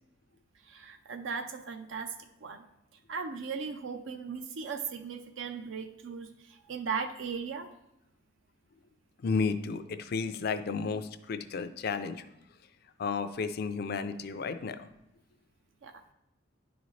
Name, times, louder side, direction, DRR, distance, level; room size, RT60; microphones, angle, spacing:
voice 1, 0.7-2.1 2.4-2.6 3.1-7.7 15.8-16.1, right 5 dB, 75° right, 6 dB, 0.5 m, -37 dB
voice 2, 9.2-12.3 13.0-14.9, left 4 dB, 55° left, 10 dB, 0.4 m, -32 dB
10.0 x 4.0 x 3.1 m, 0.87 s
head